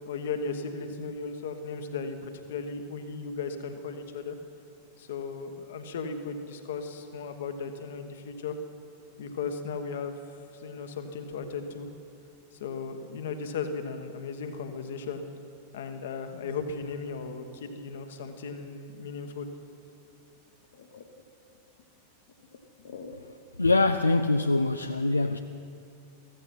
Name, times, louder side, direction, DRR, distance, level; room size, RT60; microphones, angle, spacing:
voice 1, 0.0-4.4 5.0-8.6 9.2-10.2 10.5-11.9 12.6-15.2 15.7-19.5 20.7-21.0 21.5-21.6 22.5-22.6 22.8-23.3, left 5 dB, 60° left, 1.2 m, -36 dB
voice 2, 23.6-25.4, left 2 dB, 80° left, 0.4 m, -23 dB
14.5 x 14.5 x 5.8 m
figure-of-eight pair, 90°, 0 cm